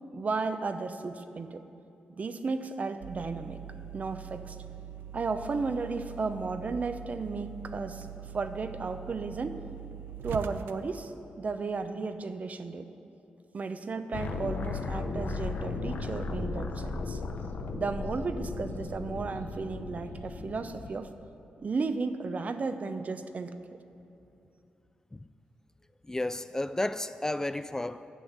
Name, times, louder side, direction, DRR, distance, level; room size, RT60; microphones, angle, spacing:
voice 1, 0.1-1.6 2.2-3.6 3.9-4.6 5.1-9.6 10.2-12.9 13.5-17.2 17.7-21.1 21.6-23.6, right 4 dB, 50° right, 0.7 m, -34 dB
sound 1, 3.0-11.1, right 9 dB, 90° right, 0.3 m, -43 dB
sound 2, 14.1-21.0, left 3 dB, 70° left, 0.8 m, -36 dB
voice 2, 26.0-28.1, left 1 dB, 15° left, 0.3 m, -32 dB
9.2 x 6.3 x 8.6 m
cardioid pair, 60°, 3 cm